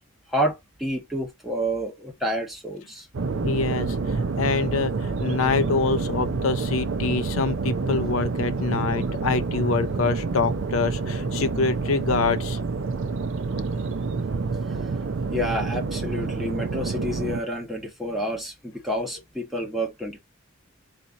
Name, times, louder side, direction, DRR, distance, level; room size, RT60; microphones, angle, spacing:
voice 1, 0.3-3.1 15.3-20.2, equal, ahead, 1.2 m, -29 dB
sound 1, 3.1-17.4, right 4 dB, 70° right, 0.5 m, -28 dB
voice 2, 3.4-12.6, left 4 dB, 80° left, 0.5 m, -25 dB
4.1 x 2.7 x 3.6 m
head